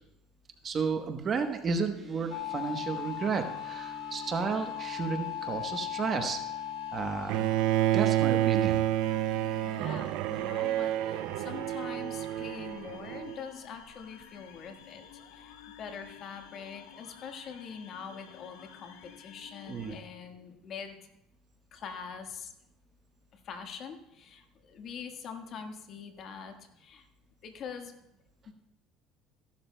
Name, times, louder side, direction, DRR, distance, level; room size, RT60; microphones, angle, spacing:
voice 1, 0.6-6.4 6.9-7.5 7.9-8.8 19.7-20.0, right 5 dB, 40° right, 6 dB, 1.0 m, -32 dB
sound 1, 1.9-11.1, right 2 dB, 15° right, 1.8 m, -52 dB
sound 2, 2.3-20.0, left 11 dB, 85° left, 1.0 m, -43 dB
Bowed string instrument, 7.3-13.4, right 13 dB, 75° right, 0.5 m, -29 dB
voice 2, 9.6-15.0 15.3-21.0 21.7-22.5 23.3-27.1 27.4-27.9, left 6 dB, 50° left, 5 dB, 1.4 m, -44 dB
15.0 x 11.5 x 2.2 m, 0.83 s
supercardioid pair, 100°, 0 cm